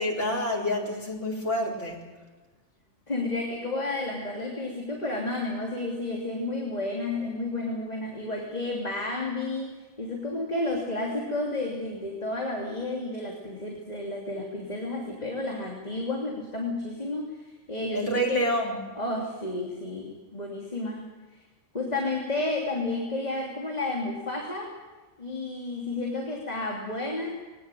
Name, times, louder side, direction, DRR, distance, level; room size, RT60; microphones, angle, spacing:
voice 1, 0.0-2.0 17.9-18.8, equal, 85° left, -2 dB, 5.0 m, -28 dB
voice 2, 3.1-18.5 19.0-21.1 21.7-24.7 25.2-27.5, left 2 dB, 35° left, -1 dB, 3.2 m, -31 dB
22.0 x 18.5 x 9.1 m, 1.3 s
omnidirectional pair, 1.2 m